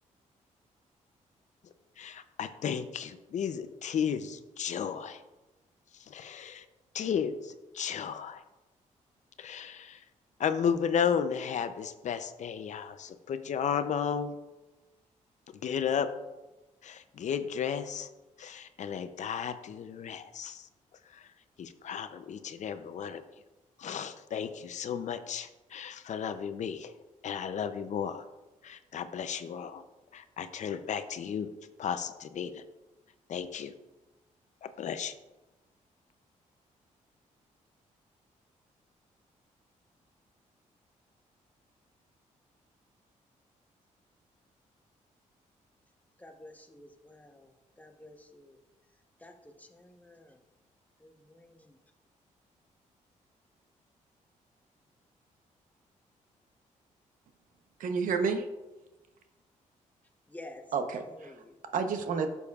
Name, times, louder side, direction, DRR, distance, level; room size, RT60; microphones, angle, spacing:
voice 1, 2.0-5.2 6.1-6.6 6.9-8.4 9.4-10.0 10.4-14.4 15.6-16.1 16.8-18.1 18.4-20.7 21.1-21.2 21.6-23.2 23.8-26.9 27.2-28.2 28.6-29.8 30.1-31.5 31.8-32.6 33.3-33.7 34.6-35.1, left 7 dB, 60° left, 0.6 m, -34 dB
voice 2, 46.2-47.5 47.8-48.6 49.2-49.3 49.6-50.4 51.0-51.8 60.3-60.6 61.2-61.5, left 1 dB, 10° left, 0.9 m, -50 dB
voice 3, 57.8-58.5 60.7-61.4 61.7-62.3, right 5 dB, 75° right, 0.8 m, -30 dB
11.5 x 7.0 x 2.4 m
cardioid pair, 90°, 14 cm